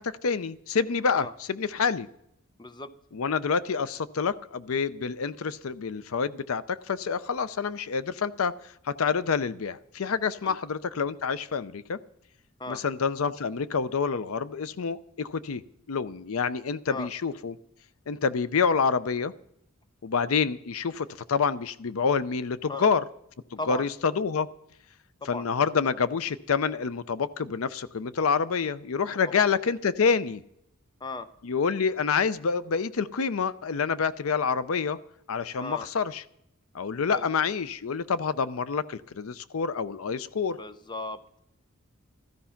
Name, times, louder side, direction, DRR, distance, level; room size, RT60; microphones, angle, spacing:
voice 1, 0.0-2.1 3.1-8.5 8.8-12.0 12.7-15.6 15.9-17.6 18.1-19.3 20.0-23.0 23.5-24.5 25.3-30.4 31.4-35.0 35.3-36.2 36.7-40.6, left 5 dB, 75° left, 16 dB, 0.5 m, -27 dB
voice 2, 2.6-2.9 10.4-10.6 12.6-12.8 16.9-17.1 22.7-22.9 23.6-23.9 25.2-25.5 29.3-29.4 31.0-31.3 35.6-35.9 37.1-37.3 40.5-41.2, left 2 dB, 20° left, 12 dB, 0.7 m, -36 dB
14.0 x 13.5 x 5.8 m, 0.75 s
head